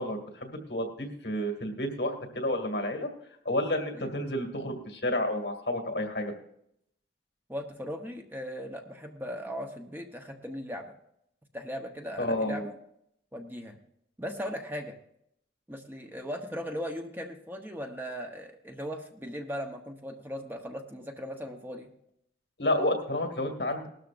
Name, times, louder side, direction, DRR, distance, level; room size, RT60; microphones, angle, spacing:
voice 1, 0.0-3.1 3.5-6.3 12.2-12.7 22.6-23.9, left 1 dB, 65° left, 4 dB, 2.1 m, -30 dB
voice 2, 7.5-10.9 11.5-12.8 13.3-13.8 14.2-15.0 15.7-21.9, equal, 10° right, 4 dB, 0.9 m, -38 dB
18.5 x 13.0 x 2.5 m, 0.74 s
head